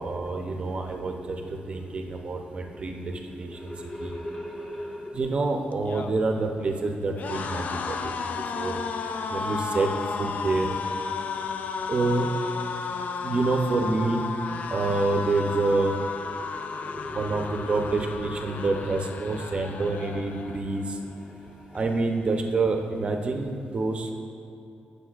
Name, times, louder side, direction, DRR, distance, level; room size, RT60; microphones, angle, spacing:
voice 1, 0.0-3.7 4.0-4.2 5.1-8.8 9.3-9.9 10.2-10.8 11.9-12.3 13.2-14.2 14.7-16.0 17.1-21.0 21.7-24.1, right 3 dB, 35° right, 3 dB, 0.6 m, -27 dB
voice 2, 3.5-5.1 16.3-17.8 18.4-18.8 19.3-19.4 21.3-21.8, left 1 dB, 20° left, -2 dB, 1.2 m, -39 dB
sound 1, 5.7-20.9 21.3-21.5 21.7-22.5, left 5 dB, 50° left, 0.4 m, -34 dB
14.0 x 6.8 x 2.4 m, 2.7 s
wide cardioid pair, 155°, 3 cm